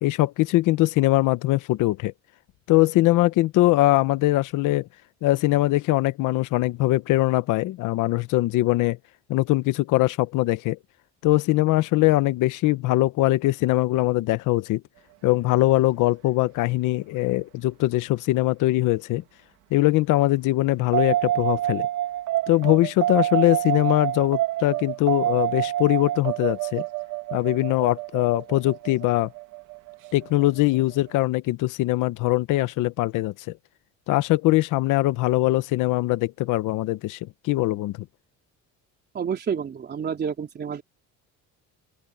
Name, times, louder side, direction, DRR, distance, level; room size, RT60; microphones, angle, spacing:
voice 1, 0.0-2.1 2.7-4.9 5.2-9.0 9.3-10.8 11.2-14.8 15.2-19.2 19.7-21.9 22.5-26.8 27.3-29.3 30.1-33.6 34.1-37.9, left 17 dB, 70° left, 1.1 m, -22 dB
sound 1, 20.9-31.1, right 13 dB, 70° right, 2.5 m, -28 dB
voice 2, 39.1-40.8, right 7 dB, 30° right, 3.8 m, -29 dB
open air
cardioid pair, 160°, 32 cm